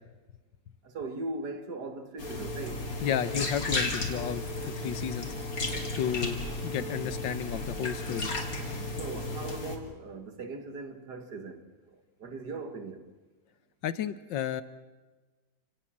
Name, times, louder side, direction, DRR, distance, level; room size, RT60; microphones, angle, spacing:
voice 1, 0.8-2.9 9.0-13.1, right 3 dB, 60° right, 2.3 m, -39 dB
sound 1, 2.2-9.8, left 2 dB, 50° left, 3.2 m, -34 dB
voice 2, 3.0-5.3 6.0-8.3 13.8-14.6, left 9 dB, 90° left, 1.7 m, -32 dB
28.0 x 18.0 x 7.5 m
omnidirectional pair, 2.0 m